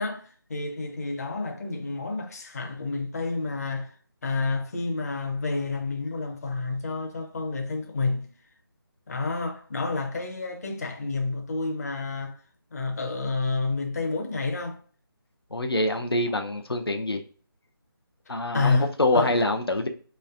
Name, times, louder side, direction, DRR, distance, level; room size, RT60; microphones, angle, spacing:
voice 1, 0.0-3.9 4.2-8.3 9.1-12.4 12.7-14.8 16.3-16.4 18.5-19.4, left 3 dB, 40° left, 0.6 m, -29 dB
voice 2, 15.5-17.2 18.3-19.9, left 1 dB, 85° left, 0.7 m, -25 dB
4.1 x 3.2 x 2.4 m
figure-of-eight pair, 155°, 12 cm